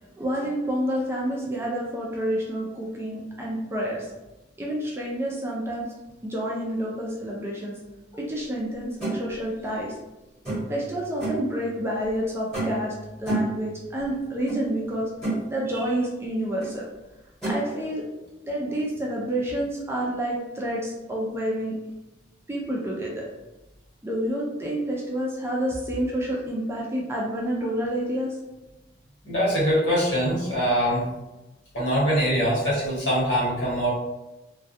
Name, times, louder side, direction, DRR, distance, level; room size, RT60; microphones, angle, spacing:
voice 1, 0.0-4.1 4.6-5.9 6.2-7.7 8.1-10.0 10.7-12.9 13.2-15.1 15.5-16.8 17.4-18.0 18.4-21.7 22.5-23.2 24.0-28.4, right 1 dB, 15° right, -4 dB, 0.4 m, -29 dB
sound 1, 9.0-9.2 10.4-10.8 11.2-11.5 12.5-12.9 13.3-13.6 14.5-14.6 15.0-15.4 16.6-16.7 17.4-17.6, right 2 dB, 5° left, 1.0 m, -28 dB
voice 2, 29.2-31.0 31.7-33.9, equal, 70° left, -7 dB, 1.1 m, -23 dB
2.2 x 2.2 x 2.6 m, 1.0 s
head